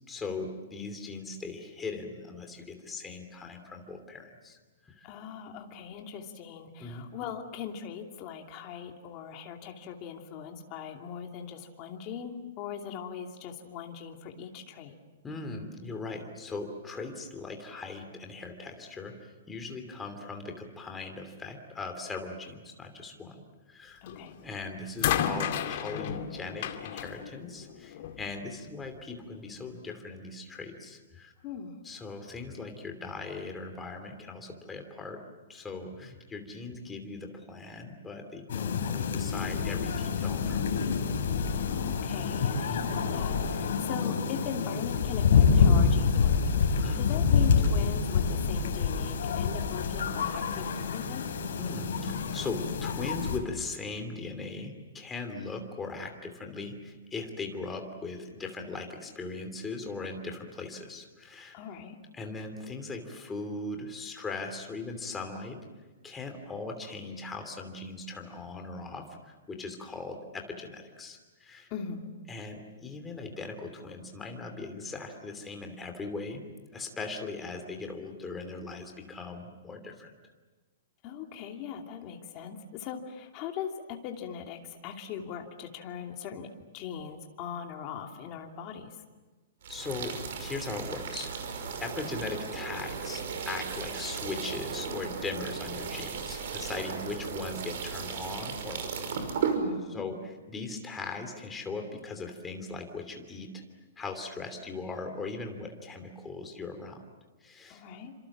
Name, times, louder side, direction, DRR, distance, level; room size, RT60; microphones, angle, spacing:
voice 1, 0.1-5.1 6.8-7.1 15.2-23.4 23.7-24.0 24.4-31.3 31.8-35.2 35.5-40.8 42.7-42.9 46.8-47.1 51.6-61.5 62.1-65.6 66.0-71.7 72.3-76.4 76.7-80.1 89.7-91.3 91.8-99.1 99.9-103.6 104.0-107.0 107.4-107.8, left 3 dB, 10° left, 4 dB, 2.9 m, -39 dB
voice 2, 5.0-15.0 24.0-24.3 31.4-31.8 41.5-51.2 61.5-62.0 71.7-72.1 81.0-86.5 86.7-88.9 99.5-100.0 107.7-108.1, left 7 dB, 25° left, 3 dB, 2.7 m, -40 dB
sound 1, 24.1-24.4 25.0-28.3 29.3-29.4, left 10 dB, 45° left, 2.2 m, -32 dB
sound 2, 38.5-53.4, left 6 dB, 65° left, 5.1 m, -27 dB
sound 3, 89.6-99.6, right 6 dB, 55° right, 5.5 m, -36 dB
29.0 x 26.5 x 7.4 m, 1.3 s
hypercardioid pair, 170°, 0 cm